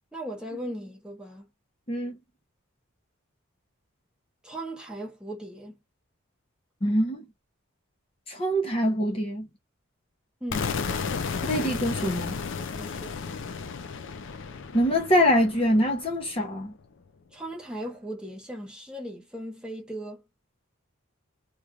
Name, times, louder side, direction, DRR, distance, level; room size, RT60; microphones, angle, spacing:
voice 1, 0.1-1.4 4.4-5.8 10.4-10.7 12.7-13.2 17.3-20.2, right 1 dB, 5° right, 0.8 m, -37 dB
voice 2, 6.8-7.2 8.3-9.5 11.5-12.4 14.7-16.7, equal, 25° left, 0.7 m, -24 dB
sound 1, 10.5-16.4, left 5 dB, 55° left, 0.5 m, -33 dB
3.1 x 2.4 x 2.3 m
head